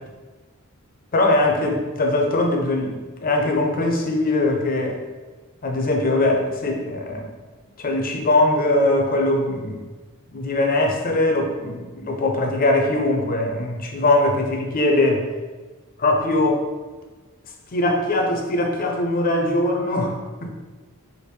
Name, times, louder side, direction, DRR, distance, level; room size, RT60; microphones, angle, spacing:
voice 1, 1.1-5.0 5.6-7.4 7.8-9.9 10.3-15.3 16.0-16.7 17.7-20.5, left 2 dB, 40° left, 2 dB, 0.6 m, -21 dB
5.0 x 2.5 x 3.2 m, 1.3 s
head